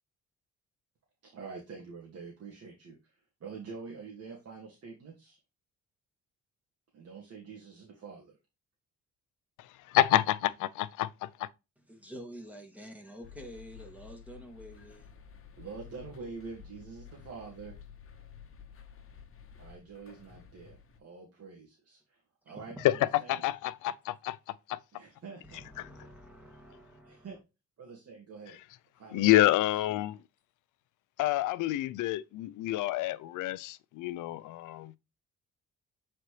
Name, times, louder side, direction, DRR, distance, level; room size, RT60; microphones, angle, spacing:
voice 1, 1.2-5.4 6.9-8.4 15.6-17.7 19.6-23.4 24.9-25.6 27.0-27.4 27.8-28.6 29.0-29.8, right 5 dB, 55° right, 2.0 m, -46 dB
voice 2, 9.9-11.5 23.3-24.4 24.7-24.8 29.1-30.2 31.2-35.0, left 15 dB, 90° left, 0.6 m, -28 dB
voice 3, 11.8-15.1 22.5-22.9 25.4-27.4, equal, 5° right, 2.3 m, -48 dB
sound 1, 13.2-21.0, left 7 dB, 45° left, 1.2 m, -52 dB
7.7 x 4.3 x 3.2 m
cardioid pair, 90°, 30 cm